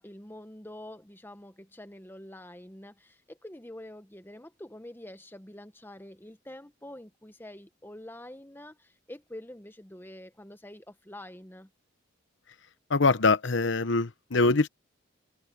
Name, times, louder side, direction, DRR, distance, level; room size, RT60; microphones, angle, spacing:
voice 1, 0.0-11.7, left 1 dB, 10° left, 1.0 m, -46 dB
voice 2, 12.9-14.7, left 3 dB, 65° left, 0.9 m, -23 dB
head